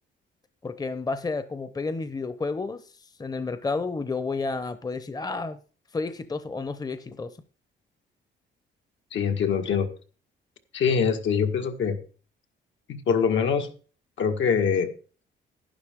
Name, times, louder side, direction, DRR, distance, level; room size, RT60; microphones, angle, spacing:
voice 1, 0.6-2.8 3.2-5.6 5.9-7.3, left 3 dB, 20° left, 11 dB, 0.8 m, -31 dB
voice 2, 9.1-9.9 10.7-12.0 12.9-13.7 14.2-14.9, left 6 dB, 70° left, 5 dB, 1.8 m, -24 dB
11.5 x 10.5 x 3.7 m, 0.38 s
cardioid pair, 90°, 20 cm